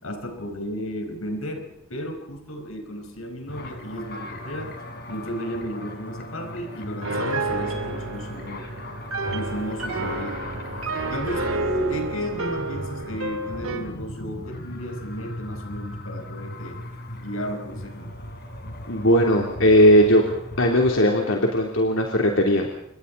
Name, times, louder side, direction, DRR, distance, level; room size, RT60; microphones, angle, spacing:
voice 1, 0.0-4.8 5.1-8.7 9.3-10.5 11.1-16.8 17.1-18.2, equal, 90° left, 6 dB, 4.8 m, -33 dB
sound 1, 3.5-21.1, left 1 dB, 50° left, 3.8 m, -38 dB
Piano, 7.0-13.9, right 2 dB, 80° right, 2.7 m, -30 dB
voice 2, 18.9-20.2 20.6-22.8, equal, 70° left, 1 dB, 3.3 m, -18 dB
28.5 x 23.5 x 4.2 m, 0.75 s
head